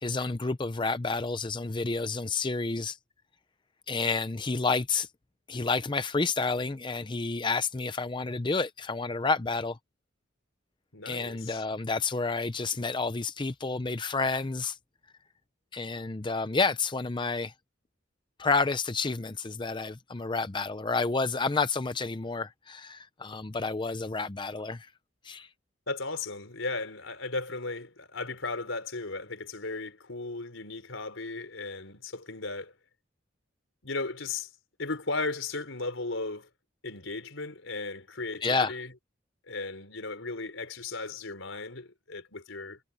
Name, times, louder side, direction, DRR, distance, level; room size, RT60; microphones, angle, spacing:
voice 1, 0.0-3.0 3.9-5.1 5.5-9.8 11.1-14.8 15.7-17.5 18.4-24.9 25.2-25.5 38.4-38.7, left 4 dB, 25° left, 0.6 m, -30 dB
voice 2, 10.9-11.6 25.9-32.7 33.8-34.5 34.8-36.5 36.8-38.9 39.5-42.8, left 3 dB, 85° left, 4.1 m, -36 dB
head